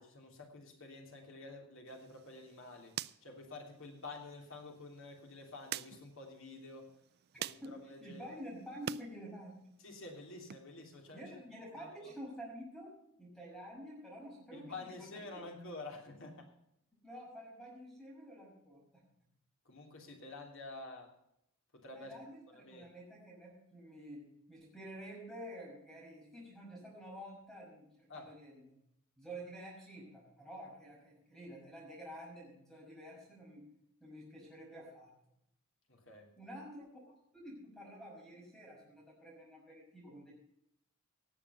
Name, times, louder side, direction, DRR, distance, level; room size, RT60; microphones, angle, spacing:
voice 1, 0.0-2.9 3.2-6.9 7.4-8.4 9.8-11.2 11.8-12.1 14.5-16.5 19.6-21.1 21.7-22.1 22.5-22.9 28.1-28.3 35.9-36.3, left 2 dB, 65° left, 2 dB, 3.1 m, -49 dB
sound 1, 1.9-9.1 9.4-10.6, right 11 dB, 50° right, 0.4 m, -48 dB
voice 2, 7.3-9.8 11.1-15.4 17.0-19.0 21.9-22.4 22.7-28.6 29.2-33.6 34.0-35.1 36.4-40.3, equal, ahead, -3 dB, 5.6 m, -49 dB
18.0 x 7.4 x 5.6 m, 0.77 s
head